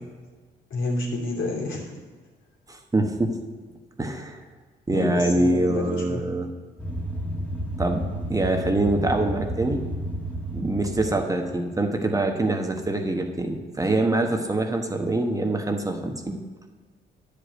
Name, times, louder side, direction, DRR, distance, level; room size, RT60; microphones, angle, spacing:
voice 1, 0.7-1.9 4.9-6.2, left 3 dB, 75° left, -2 dB, 2.7 m, -29 dB
voice 2, 2.7-3.4 4.0-4.4 4.9-6.5 7.8-8.0 8.3-9.8 10.5-16.4, right 2 dB, 15° right, 3 dB, 1.1 m, -24 dB
sound 1, 6.8-11.4, equal, 10° left, 1.6 m, -31 dB
9.8 x 5.1 x 7.7 m, 1.4 s
cardioid pair, 90°, 20 cm